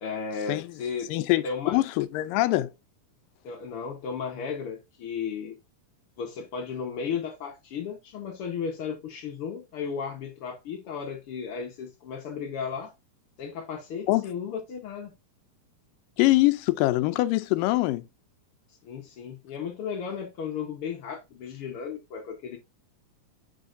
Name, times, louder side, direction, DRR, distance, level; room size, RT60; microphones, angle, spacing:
voice 1, 0.0-1.1 1.4-1.8 3.4-5.6 6.2-12.9 13.4-15.1 18.8-22.6, left 6 dB, 65° left, 1.4 m, -34 dB
voice 2, 1.1-2.7 14.1-14.3 16.2-18.1, left 18 dB, 85° left, 2.2 m, -23 dB
9.7 x 4.4 x 2.5 m
omnidirectional pair, 3.8 m